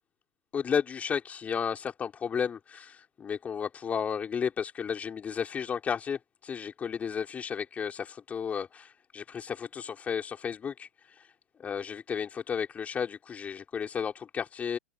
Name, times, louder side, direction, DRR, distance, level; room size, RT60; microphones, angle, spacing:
voice 1, 0.5-10.9 11.6-14.8, left 7 dB, 20° left, 4.9 m, -33 dB
figure-of-eight pair, 95°, 8 cm